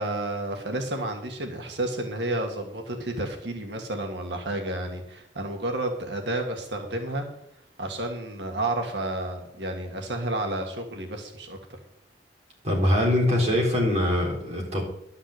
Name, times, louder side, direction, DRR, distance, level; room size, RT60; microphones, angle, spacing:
voice 1, 0.0-7.3 7.8-11.8, right 1 dB, 80° right, 4 dB, 1.8 m, -31 dB
voice 2, 12.6-14.8, left 1 dB, 40° right, -2 dB, 3.9 m, -23 dB
12.0 x 5.9 x 7.9 m, 0.77 s
head